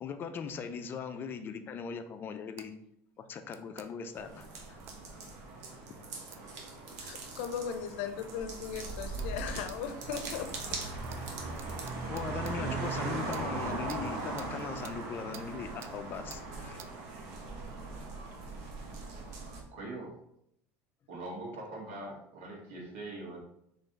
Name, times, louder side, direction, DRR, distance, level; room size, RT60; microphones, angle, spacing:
voice 1, 0.0-2.8 3.2-4.8 5.9-6.0 12.1-16.8 17.9-18.0, left 6 dB, 35° left, 0.5 m, -40 dB
sound 1, 2.6-2.7 3.5-3.9 4.9-5.0 6.3-6.4 7.4-7.6 8.2-8.3 9.2-9.3 9.7-9.8 10.5-10.7 11.1-11.2 11.6-12.6 13.3-13.5 13.9-14.0 14.4-14.5 14.8-15.0 15.3-15.5 15.8-15.9 16.3-16.4 16.8-16.9, right 8 dB, 40° right, 0.4 m, -50 dB
sound 2, 4.1-19.6, right 3 dB, 65° right, 1.0 m, -39 dB
voice 2, 7.0-10.5, left 7 dB, 80° left, 0.5 m, -37 dB
voice 3, 19.7-20.2 21.1-23.4, right 2 dB, 85° right, 1.7 m, -42 dB
3.9 x 3.2 x 4.0 m
supercardioid pair, 135°, 7 cm